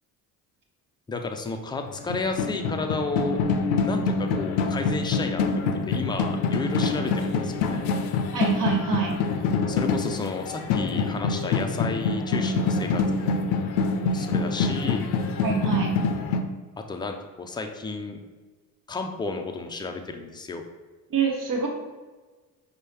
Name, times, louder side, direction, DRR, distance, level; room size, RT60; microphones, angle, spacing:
voice 1, 1.1-3.4 3.8-5.4 5.7-7.8 9.7-13.6 14.1-15.0 16.9-18.2 18.9-20.6, left 3 dB, 10° left, 4 dB, 0.4 m, -32 dB
sound 1, 1.9-16.4, left 4 dB, 70° left, 0.5 m, -26 dB
voice 2, 8.3-9.2 15.4-15.9 21.1-21.7, right 6 dB, 50° right, 1 dB, 1.0 m, -25 dB
5.2 x 2.2 x 3.3 m, 1.3 s
hypercardioid pair, 55°, 43 cm